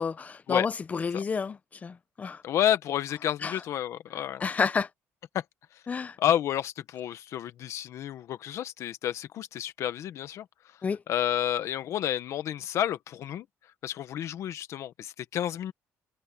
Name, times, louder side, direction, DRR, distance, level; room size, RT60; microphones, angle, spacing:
voice 1, 0.0-2.4 3.4-3.6 4.4-4.9 5.9-6.2 10.8-11.0, left 5 dB, 25° left, 1.0 m, -30 dB
voice 2, 2.4-4.4 5.3-5.4 6.2-10.4 11.1-13.4 13.8-15.7, left 11 dB, 60° left, 1.3 m, -30 dB
cardioid pair, 130°, 6 cm